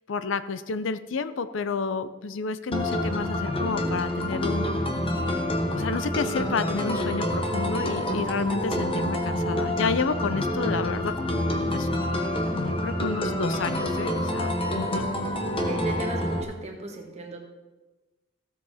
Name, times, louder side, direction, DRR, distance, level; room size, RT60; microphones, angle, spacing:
voice 1, 0.1-4.7 5.7-11.2 11.7-11.9 12.5-15.0, left 4 dB, 70° left, 12 dB, 0.5 m, -30 dB
sound 1, 2.7-16.4, left 1 dB, 25° left, 1.0 m, -27 dB
voice 2, 15.7-17.4, right 1 dB, 30° right, 2 dB, 1.5 m, -36 dB
15.5 x 7.1 x 4.2 m, 1.2 s
head